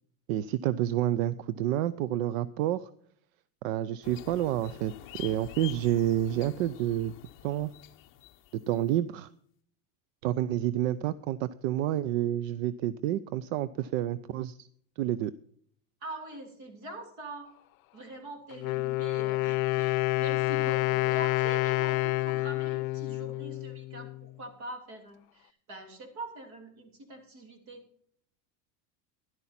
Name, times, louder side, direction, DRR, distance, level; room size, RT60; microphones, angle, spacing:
voice 1, 0.3-2.9 3.6-4.9 5.2-7.1 7.4-7.7 8.7-9.3 10.2-14.7 15.0-15.3, right 12 dB, 70° right, 17 dB, 0.6 m, -29 dB
sound 1, 4.0-8.9, left 13 dB, 30° left, 0.7 m, -47 dB
voice 2, 16.0-17.5 17.9-27.8, right 1 dB, 45° right, 4 dB, 3.1 m, -43 dB
Wind instrument woodwind instrument, 18.5-24.3, left 21 dB, 85° left, 0.6 m, -28 dB
12.5 x 11.0 x 4.2 m, 0.64 s
supercardioid pair, 160°, 40 cm